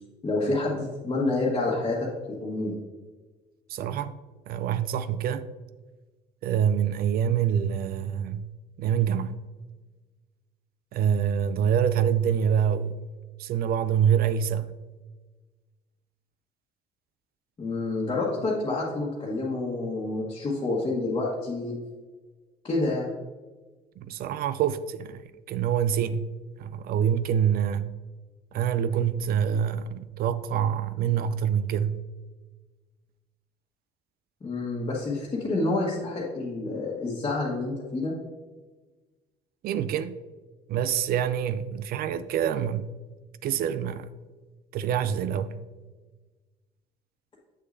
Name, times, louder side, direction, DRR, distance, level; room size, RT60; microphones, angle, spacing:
voice 1, 0.2-2.1 2.4-2.7 17.6-21.7 22.6-23.1 34.4-38.1, left 2 dB, 30° left, 1.3 m, -28 dB
voice 2, 3.7-4.1 4.5-5.5 6.4-8.5 8.8-9.4 10.9-13.0 13.4-14.7 24.0-26.3 26.6-27.9 28.5-32.0 39.6-40.2 40.7-42.9 43.4-44.1 44.7-45.6, right 8 dB, 65° right, 0.4 m, -26 dB
7.8 x 6.3 x 2.6 m
cardioid pair, 110°, 17 cm